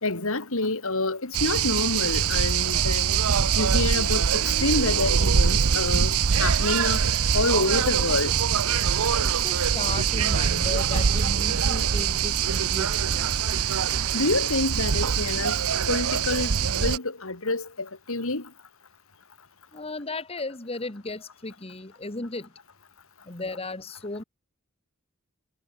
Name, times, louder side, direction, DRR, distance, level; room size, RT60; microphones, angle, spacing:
voice 1, 0.0-3.2 3.5-7.0 7.3-8.3 14.1-15.6 15.9-18.5, left 2 dB, 65° left, 3.0 m, -27 dB
sound 1, 1.3-17.0, right 7 dB, 80° right, 0.8 m, -23 dB
voice 2, 9.2-13.3 19.7-22.5 23.3-24.2, left 2 dB, 25° left, 1.9 m, -35 dB
head